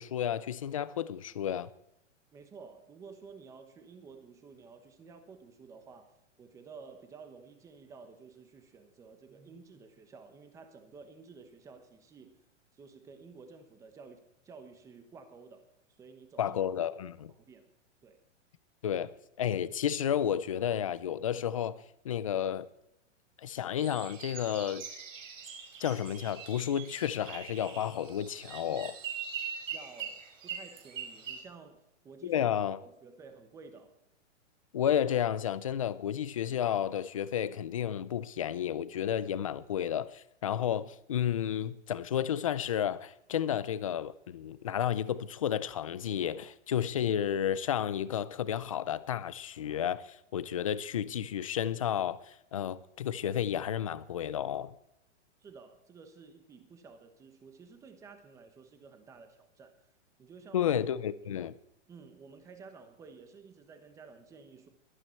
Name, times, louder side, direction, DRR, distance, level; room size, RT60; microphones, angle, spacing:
voice 1, 0.0-1.7 16.4-17.3 18.8-19.1 19.4-22.7 23.4-24.8 25.8-29.0 32.2-32.8 34.7-54.7 60.5-61.5, left 9 dB, 30° left, 0.4 m, -32 dB
voice 2, 2.3-12.4 12.7-16.6 17.3-17.7 18.0-18.2 29.7-32.4 32.8-34.0 55.4-59.7 60.2-60.7 61.9-64.7, right 5 dB, 10° right, 1.0 m, -52 dB
sound 1, 23.8-31.4, right 7 dB, 85° right, 5.1 m, -42 dB
22.0 x 9.0 x 4.5 m
hypercardioid pair, 170°, 37 cm